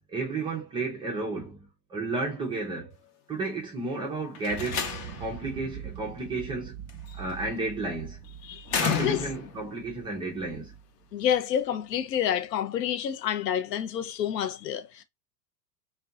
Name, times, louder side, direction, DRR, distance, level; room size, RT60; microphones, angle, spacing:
voice 1, 0.1-2.9 3.3-4.9 5.2-6.8 7.2-8.2 8.8-10.7, right 3 dB, 10° right, 0.3 m, -32 dB
Slam, 4.3-5.4 6.9-7.3 8.7-9.6, left 7 dB, 35° left, 0.6 m, -30 dB
sound 1, 4.5-11.6, right 9 dB, 35° right, 0.7 m, -43 dB
voice 2, 8.4-9.3 11.1-15.0, left 9 dB, 80° left, 0.6 m, -29 dB
2.5 x 2.3 x 2.3 m
hypercardioid pair, 95°, 49 cm